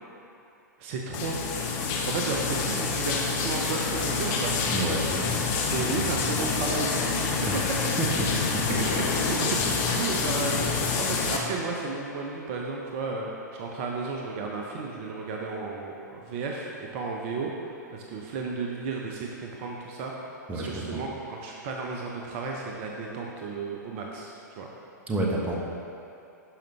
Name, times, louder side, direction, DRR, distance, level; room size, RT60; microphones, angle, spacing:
voice 1, 0.8-1.4 2.1-4.5 5.7-7.1 8.0-8.1 8.6-17.5 17.9-20.1 20.5-24.7, right 4 dB, 45° right, -1 dB, 0.8 m, -33 dB
sound 1, 1.1-11.4, left 4 dB, 40° left, 1.0 m, -27 dB
voice 2, 4.7-6.1 7.5-7.7 8.0-8.3 20.5-21.0 25.1-25.5, right 2 dB, 15° right, -2 dB, 1.2 m, -30 dB
11.5 x 5.2 x 3.3 m, 2.7 s
figure-of-eight pair, 105°, 10 cm